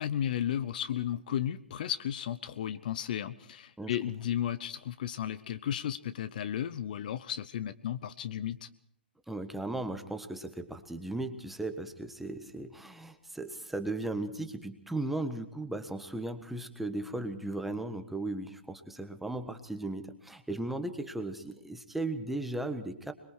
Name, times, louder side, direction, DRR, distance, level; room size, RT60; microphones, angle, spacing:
voice 1, 0.0-8.7, left 10 dB, 50° left, 15 dB, 0.8 m, -34 dB
voice 2, 9.3-23.1, right 2 dB, 5° right, 7 dB, 1.5 m, -36 dB
25.5 x 22.0 x 4.6 m, 0.67 s
figure-of-eight pair, 120°, 6 cm